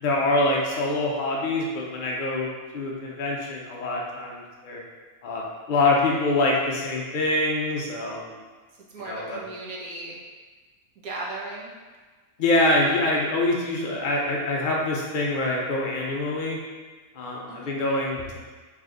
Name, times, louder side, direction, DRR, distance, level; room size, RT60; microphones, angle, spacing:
voice 1, 0.0-4.8 5.2-5.4 5.7-8.4 9.0-9.4 12.4-16.6 17.2-18.4, left 2 dB, 75° left, -3 dB, 0.4 m, -25 dB
voice 2, 8.9-10.2 11.0-11.7 17.5-17.7, right 2 dB, 75° right, -3 dB, 1.3 m, -36 dB
3.3 x 3.3 x 3.8 m, 1.4 s
omnidirectional pair, 1.6 m